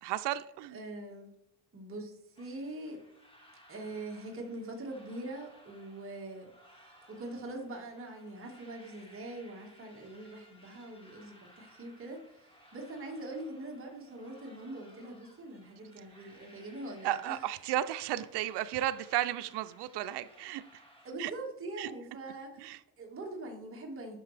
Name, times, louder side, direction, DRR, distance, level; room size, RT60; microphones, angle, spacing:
voice 1, 0.0-0.8 17.0-20.8 21.2-21.3 21.8-21.9 22.6-22.8, right 13 dB, 90° right, 0.5 m, -34 dB
voice 2, 0.7-1.3 1.7-3.0 3.7-6.5 7.1-17.4 21.0-24.2, right 2 dB, 35° right, 1.8 m, -43 dB
sound 1, 2.3-21.1, equal, 15° left, 1.8 m, -60 dB
10.5 x 6.0 x 3.3 m
cardioid pair, 120°, 39 cm